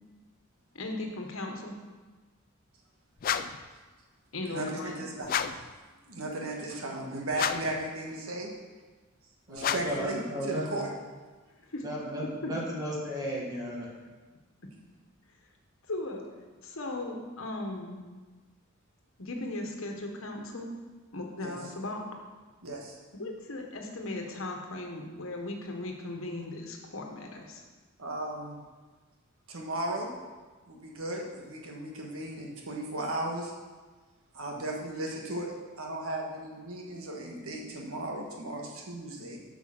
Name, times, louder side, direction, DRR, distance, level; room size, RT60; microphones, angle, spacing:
voice 1, 0.7-1.7 4.3-5.0 11.7-11.8 12.4-12.5 15.9-16.2 16.6-18.0 19.2-20.7 21.1-22.0 23.1-27.6, left 2 dB, 70° left, 2 dB, 1.4 m, -37 dB
sound 1, 3.2-3.7 5.2-5.7 7.3-7.8 9.6-10.1, left 8 dB, 45° left, 0.3 m, -31 dB
voice 2, 4.5-5.4 6.1-8.5 9.5-10.9 21.4-21.5 22.6-23.0 28.0-28.6 29.5-30.1 30.7-33.5 34.3-39.4, right 1 dB, 85° right, 0 dB, 1.6 m, -36 dB
voice 3, 9.5-10.8 11.8-13.9, equal, 20° right, -4 dB, 1.7 m, -34 dB
8.2 x 5.8 x 6.0 m, 1.3 s
head